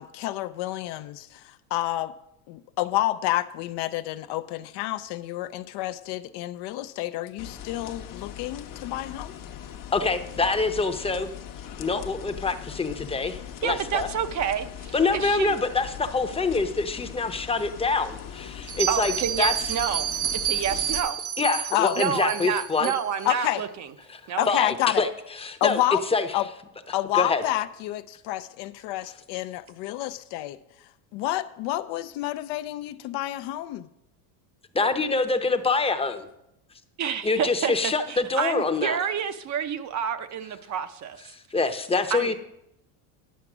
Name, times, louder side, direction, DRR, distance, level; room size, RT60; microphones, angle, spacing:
voice 1, 0.0-2.1 2.5-9.3 21.7-22.0 23.3-23.6 24.4-25.1 25.6-26.0 26.3-26.5 26.9-30.6 31.1-33.9, left 15 dB, 60° left, 12 dB, 0.6 m, -29 dB
sound 1, 7.4-21.0, left 9 dB, 45° left, 0.9 m, -40 dB
voice 2, 9.9-11.3 11.8-14.1 14.9-19.1 19.4-19.5 21.4-22.9 24.1-24.2 24.5-25.1 25.4-25.8 26.1-26.3 27.1-27.4 34.7-36.3 37.2-39.0 41.3-42.3, left 3 dB, 15° left, 7 dB, 0.8 m, -25 dB
voice 3, 13.6-15.6 18.9-21.2 22.0-23.9 24.3-24.5 37.0-41.3 42.1-42.3, right 8 dB, 40° right, 10 dB, 0.7 m, -29 dB
Bell, 18.6-23.3, right 9 dB, 65° right, 1.7 m, -30 dB
10.0 x 5.8 x 6.0 m, 0.83 s
supercardioid pair, 105°, 45 cm